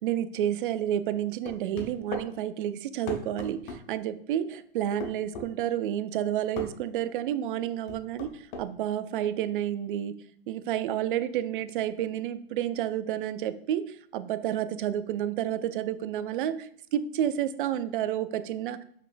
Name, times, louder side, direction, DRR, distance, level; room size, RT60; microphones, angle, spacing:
voice 1, 0.0-8.3 8.6-10.2 10.5-13.8 14.1-18.8, right 11 dB, 60° right, 13 dB, 0.4 m, -30 dB
sound 1, 1.5-2.3 3.1-3.8 5.0-5.5 6.6-6.7 7.9-8.7, left 2 dB, 50° left, 0.9 m, -37 dB
5.7 x 3.4 x 2.5 m, 0.66 s
hypercardioid pair, 120°, 29 cm